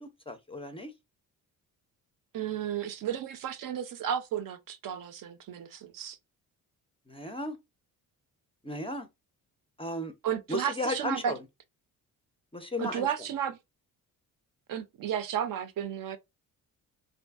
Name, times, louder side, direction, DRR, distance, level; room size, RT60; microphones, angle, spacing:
voice 1, 0.0-0.9 7.1-7.6 8.6-9.1 9.8-10.1 10.5-11.4 12.5-13.1, left 1 dB, 15° left, 0.4 m, -34 dB
voice 2, 2.3-6.2 10.2-11.3 12.8-13.6 14.7-16.2, right 9 dB, 60° right, 0.5 m, -33 dB
2.6 x 2.5 x 2.3 m
cardioid pair, 80°, 38 cm